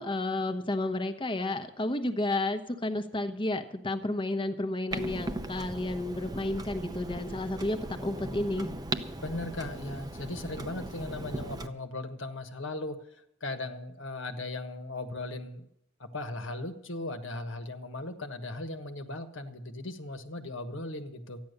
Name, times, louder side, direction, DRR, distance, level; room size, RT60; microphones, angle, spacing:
voice 1, 0.0-8.7, left 2 dB, 25° left, 7 dB, 1.0 m, -31 dB
Clock, 4.9-11.7, right 1 dB, 20° right, 0.7 m, -38 dB
voice 2, 9.2-15.7 16.0-21.4, left 2 dB, 65° left, 6 dB, 1.4 m, -38 dB
14.0 x 10.5 x 6.7 m, 0.74 s
head